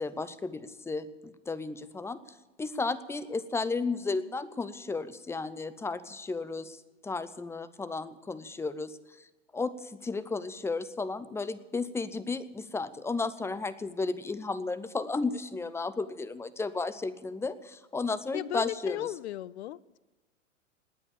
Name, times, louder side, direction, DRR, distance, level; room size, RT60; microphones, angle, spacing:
voice 1, 0.0-2.2 2.6-9.3 9.5-19.1, left 3 dB, 5° left, 15 dB, 0.6 m, -34 dB
voice 2, 18.3-20.0, left 13 dB, 60° left, 22 dB, 0.7 m, -36 dB
18.5 x 9.7 x 7.0 m, 1.2 s
hypercardioid pair, 105°, 37 cm